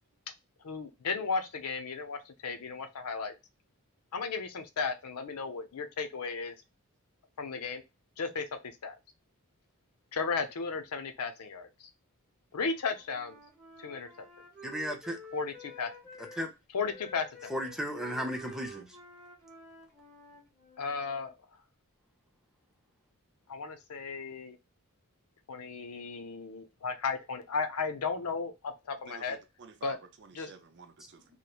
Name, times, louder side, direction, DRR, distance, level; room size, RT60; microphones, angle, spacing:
voice 1, 0.6-3.3 4.1-6.5 7.4-7.8 8.2-8.5 8.8-9.0 10.1-11.9 12.5-13.4 13.8-14.1 15.3-15.9 16.7-17.5 20.8-21.3 23.5-24.6 25.5-29.4 29.8-30.0 30.3-30.5, left 4 dB, 85° left, 0.6 m, -35 dB
Wind instrument woodwind instrument, 12.7-16.5 16.8-21.3, left 1 dB, 15° left, 1.5 m, -50 dB
voice 2, 14.6-15.2 16.2-16.5 17.5-19.0, equal, ahead, 0.5 m, -35 dB
voice 3, 29.1-31.2, right 5 dB, 55° right, 0.5 m, -52 dB
3.0 x 2.1 x 2.3 m
head